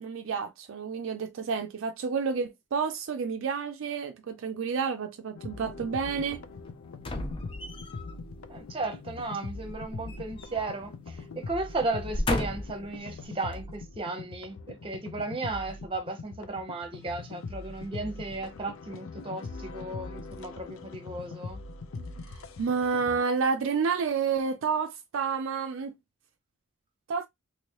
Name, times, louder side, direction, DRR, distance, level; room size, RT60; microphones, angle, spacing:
voice 1, 0.0-6.4 22.0-22.3 22.6-25.9 27.1-27.3, right 5 dB, 65° right, 0.4 m, -30 dB
sound 1, 5.3-23.2, left 3 dB, 75° left, 0.5 m, -42 dB
sound 2, 7.0-8.1 9.7-10.8 11.1-11.3 11.9-12.9 13.5-13.6, left 1 dB, 25° left, 0.5 m, -33 dB
voice 2, 8.5-21.6, right 2 dB, 25° right, 0.8 m, -35 dB
3.0 x 2.6 x 2.9 m
head